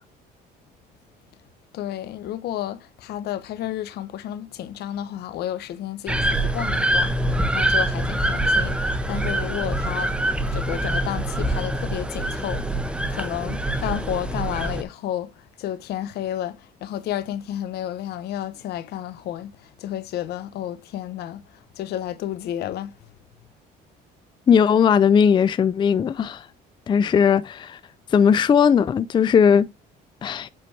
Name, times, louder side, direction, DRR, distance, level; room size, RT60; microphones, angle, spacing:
voice 1, 1.7-10.1 10.5-23.1, left 11 dB, 75° left, 0.9 m, -31 dB
sound 1, 6.1-14.8, right 1 dB, 5° right, 1.0 m, -24 dB
voice 2, 24.5-26.5 26.9-27.8 28.1-29.7 30.2-30.5, left 7 dB, 30° left, 0.4 m, -18 dB
7.6 x 4.3 x 3.2 m
cardioid pair, 110°, 17 cm